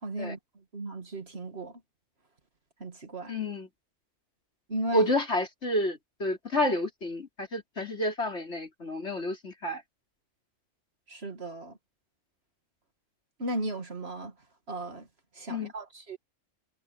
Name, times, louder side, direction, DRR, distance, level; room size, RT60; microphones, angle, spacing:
voice 1, 0.0-0.4 0.7-1.8 2.8-3.4 4.7-5.1 11.1-11.8 13.4-14.3 14.7-15.1 15.3-16.2, right 1 dB, 55° right, 2.4 m, -35 dB
voice 2, 3.3-3.7 4.9-9.8 15.5-15.7, left 1 dB, 60° left, 4.3 m, -30 dB
omnidirectional pair, 1.3 m